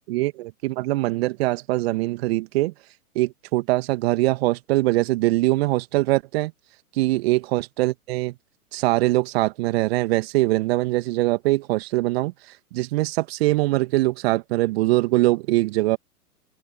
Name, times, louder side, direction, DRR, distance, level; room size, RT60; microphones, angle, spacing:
voice 1, 0.1-2.7 3.2-6.5 7.0-8.3 8.7-12.3 12.7-16.0, right 19 dB, 40° right, 2.1 m, -22 dB
open air
figure-of-eight pair, 115°, 45 cm